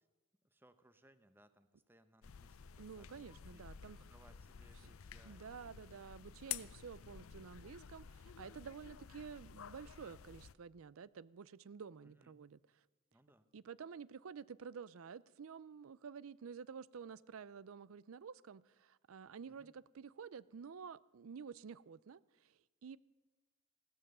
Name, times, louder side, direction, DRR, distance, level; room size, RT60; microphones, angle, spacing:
voice 1, 0.4-5.6 12.0-12.4 13.1-13.5 19.5-19.7, right 1 dB, 10° right, 0.8 m, -68 dB
sound 1, 2.2-10.5, left 9 dB, 90° left, 0.5 m, -51 dB
voice 2, 2.8-4.0 5.2-12.6 13.5-23.0, right 6 dB, 90° right, 0.5 m, -51 dB
16.5 x 13.0 x 6.8 m
head